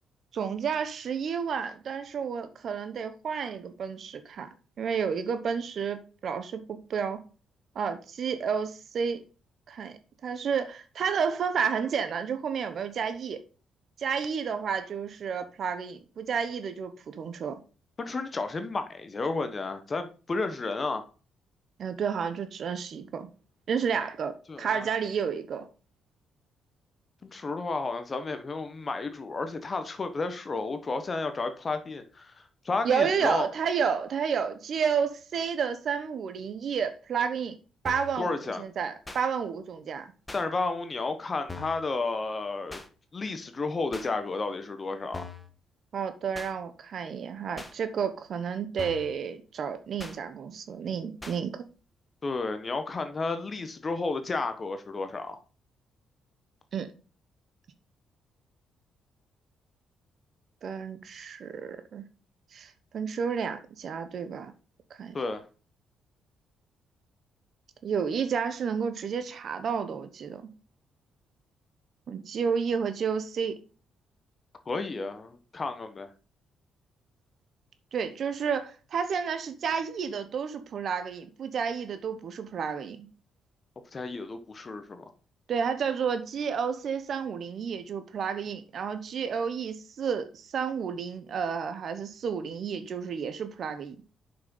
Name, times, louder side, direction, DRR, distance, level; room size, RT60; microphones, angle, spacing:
voice 1, 0.3-4.5 4.8-7.2 7.7-9.2 9.7-13.4 14.0-17.6 21.8-23.3 23.7-25.7 32.8-37.6 37.8-38.3 38.6-40.1 45.9-51.6 56.7-56.9 60.6-62.0 62.5-64.5 64.9-65.2 67.8-70.5 72.1-73.6 77.9-83.1 85.5-94.0, right 6 dB, 60° right, 1.0 m, -31 dB
voice 2, 18.0-21.0 24.5-24.9 27.2-33.5 38.2-38.6 40.3-42.8 43.1-45.3 52.2-55.4 65.1-65.4 74.7-76.1 83.9-85.0, left 3 dB, 35° left, 1.0 m, -32 dB
sound 1, 37.9-38.2 39.1-39.2 40.3-40.4 41.5-41.8 42.7-42.9 43.9-44.1 45.1-45.5 46.3-46.5 47.6-47.7 48.8-49.1 50.0-50.2 51.2-51.4, left 3 dB, 15° left, 1.4 m, -41 dB
6.6 x 5.9 x 5.4 m
cardioid pair, 90°, 0 cm